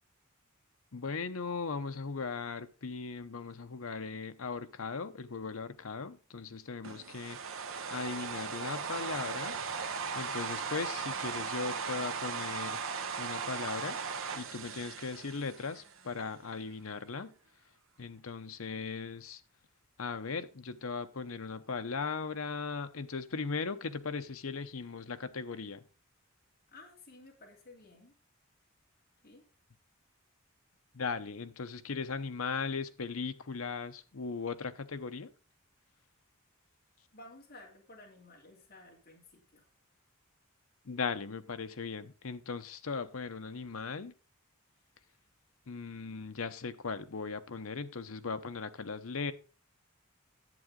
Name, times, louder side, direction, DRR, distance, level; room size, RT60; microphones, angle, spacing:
voice 1, 0.9-9.6 10.1-12.8 13.2-14.0 14.3-17.3 18.0-19.4 20.0-25.8 30.9-35.3 40.8-44.1 45.7-49.3, left 4 dB, 90° left, 0.9 m, -38 dB
sound 1, 6.8-16.1, right 5 dB, 70° right, 1.0 m, -38 dB
voice 2, 26.7-28.1 29.2-29.4 37.1-39.6, left 2 dB, 45° left, 2.8 m, -54 dB
11.0 x 8.4 x 3.8 m
head